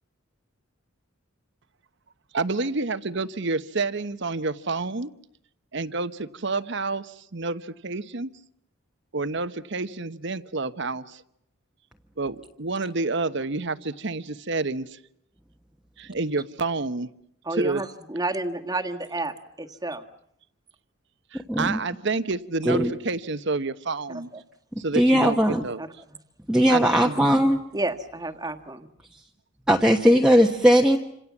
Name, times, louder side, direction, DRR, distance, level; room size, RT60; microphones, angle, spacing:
voice 1, 2.3-5.1 5.7-8.3 9.1-11.2 12.2-15.0 16.0-17.1 17.6-17.8 21.3-24.3 24.8-25.8 26.7-27.2, right 3 dB, 60° right, 12 dB, 1.1 m, -29 dB
voice 2, 17.4-20.0 24.3-24.4 25.8-26.2 27.7-28.9, right 2 dB, 20° right, 5 dB, 1.6 m, -31 dB
voice 3, 21.5-21.8 22.6-22.9 24.9-25.6 26.5-27.6 29.7-31.0, equal, 5° right, 1 dB, 1.2 m, -18 dB
28.0 x 27.0 x 7.3 m, 0.74 s
head